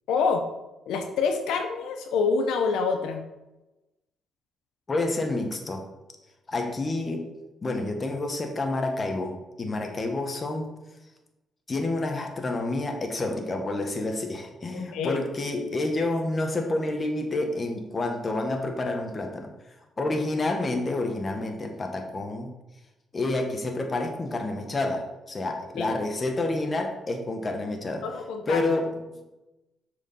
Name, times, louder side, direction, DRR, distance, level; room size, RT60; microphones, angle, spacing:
voice 1, 0.1-0.4 0.9-3.2 14.7-15.2 25.8-26.0 28.0-28.7, left 5 dB, 85° left, 4 dB, 1.0 m, -26 dB
voice 2, 4.9-5.9 6.5-7.3 7.6-10.7 11.7-19.5 20.0-22.5 23.1-28.1 28.5-29.2, left 2 dB, 30° left, 4 dB, 1.5 m, -29 dB
7.1 x 5.1 x 5.7 m, 1.0 s
cardioid pair, 90°, 0 cm